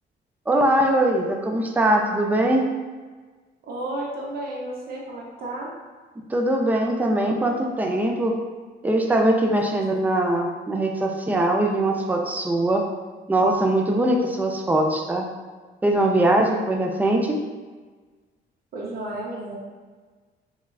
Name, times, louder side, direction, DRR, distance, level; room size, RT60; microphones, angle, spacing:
voice 1, 0.5-2.7 6.3-8.3 8.8-12.8 13.3-15.2 15.8-17.4, right 1 dB, 10° right, 2 dB, 0.3 m, -21 dB
voice 2, 3.7-5.7 9.5-9.7 18.7-19.6, right 1 dB, 50° right, -3 dB, 0.6 m, -32 dB
3.1 x 2.3 x 2.3 m, 1.4 s
cardioid pair, 90°, 20 cm